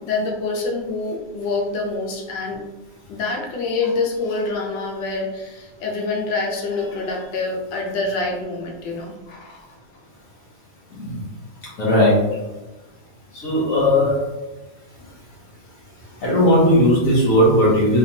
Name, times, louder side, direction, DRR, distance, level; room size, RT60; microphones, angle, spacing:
voice 1, 0.0-2.6 3.1-9.7, left 3 dB, 85° left, -1 dB, 1.5 m, -26 dB
voice 2, 11.8-12.2 13.3-14.2 16.2-18.0, equal, 50° left, -6 dB, 1.4 m, -17 dB
3.5 x 3.4 x 2.8 m, 1.1 s
omnidirectional pair, 2.0 m